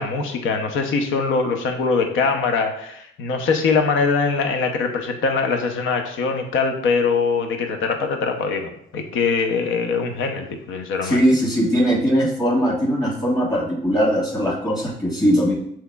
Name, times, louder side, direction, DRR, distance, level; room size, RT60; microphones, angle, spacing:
voice 1, 0.0-11.2, left 4 dB, 85° left, 5 dB, 0.6 m, -22 dB
voice 2, 11.0-15.5, equal, 20° left, -4 dB, 1.7 m, -20 dB
6.4 x 2.9 x 2.3 m, 0.72 s
cardioid pair, 90°, 20 cm